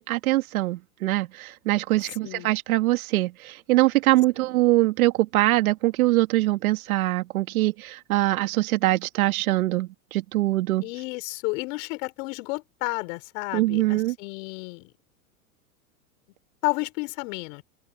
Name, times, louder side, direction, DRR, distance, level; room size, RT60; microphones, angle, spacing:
voice 1, 0.0-10.8 13.5-14.1, right 17 dB, 70° right, 2.4 m, -23 dB
voice 2, 10.8-14.9 16.6-17.6, left 28 dB, 55° left, 4.4 m, -31 dB
open air
hypercardioid pair, 105°, 45 cm